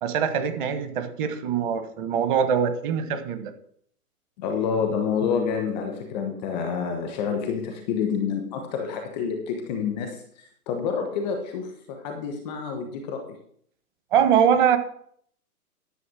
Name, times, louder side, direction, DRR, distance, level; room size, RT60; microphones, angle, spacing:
voice 1, 0.0-3.5 14.1-14.8, right 8 dB, 30° right, 10 dB, 1.3 m, -23 dB
voice 2, 4.4-13.4, left 6 dB, ahead, 4 dB, 0.4 m, -28 dB
11.5 x 6.5 x 6.2 m, 0.65 s
hypercardioid pair, 140°, 47 cm